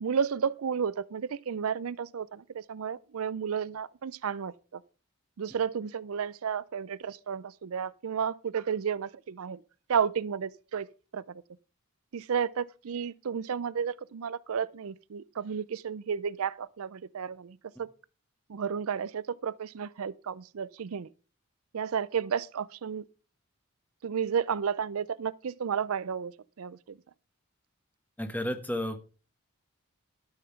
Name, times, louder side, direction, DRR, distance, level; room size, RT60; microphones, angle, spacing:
voice 1, 0.0-4.8 5.4-9.6 9.9-10.9 11.1-11.2 12.1-17.9 18.5-21.1 21.7-23.0 24.0-26.3 26.6-27.0, right 7 dB, 75° right, 0.5 m, -32 dB
voice 2, 28.2-29.1, left 1 dB, 5° left, 1.1 m, -32 dB
12.5 x 5.7 x 5.8 m
head